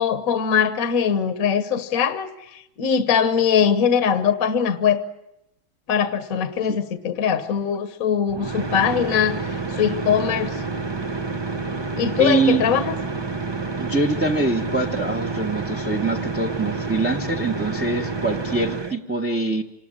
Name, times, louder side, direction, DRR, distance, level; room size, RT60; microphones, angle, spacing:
voice 1, 0.0-5.0 5.9-10.6 12.0-12.9, left 7 dB, 45° left, 11 dB, 1.5 m, -21 dB
sound 1, 8.3-19.0, right 3 dB, 25° right, 0.6 m, -29 dB
voice 2, 12.2-12.6 13.8-19.6, right 3 dB, 5° right, 0 dB, 0.9 m, -24 dB
26.5 x 19.5 x 9.0 m, 0.85 s
omnidirectional pair, 2.2 m